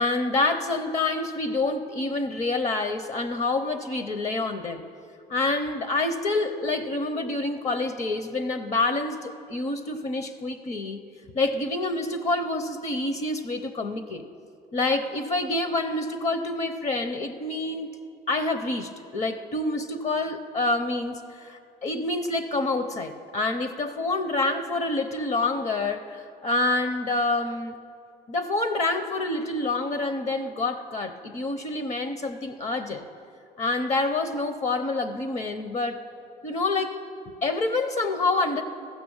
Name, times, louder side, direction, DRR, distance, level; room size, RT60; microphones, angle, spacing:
voice 1, 0.0-4.8 5.3-11.0 11.3-14.2 14.7-18.0 18.3-27.8 28.3-33.1 33.6-36.0 36.4-36.9 37.4-38.6, left 2 dB, 40° left, 9 dB, 0.7 m, -27 dB
14.5 x 5.8 x 7.1 m, 2.4 s
cardioid pair, 110°, 17 cm